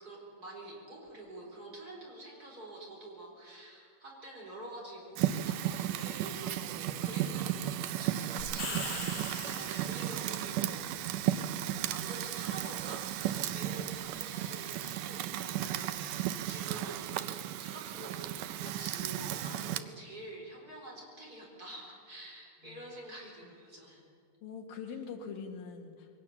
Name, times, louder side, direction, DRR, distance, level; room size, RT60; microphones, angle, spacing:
voice 1, 0.0-10.9 11.6-17.1 17.6-24.0, right 1 dB, 25° right, -2 dB, 4.3 m, -47 dB
Fire, 5.2-19.8, right 12 dB, 75° right, 2.1 m, -35 dB
sound 1, 8.4-10.3, left 4 dB, 50° left, 4.2 m, -40 dB
voice 2, 13.4-13.7 22.6-22.9 24.4-26.1, left 6 dB, 80° left, 2 dB, 3.5 m, -44 dB
22.5 x 18.5 x 7.0 m, 2.2 s
omnidirectional pair, 4.0 m